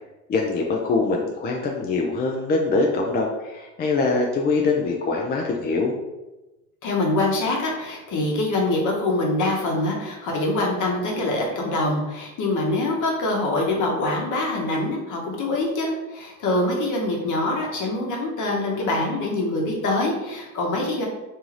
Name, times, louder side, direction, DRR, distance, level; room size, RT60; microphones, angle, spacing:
voice 1, 0.3-5.9, left 3 dB, 25° left, 0 dB, 0.3 m, -23 dB
voice 2, 6.8-21.1, left 2 dB, 50° left, 0 dB, 1.0 m, -24 dB
2.7 x 2.3 x 3.1 m, 1.0 s
supercardioid pair, 80°, 40 cm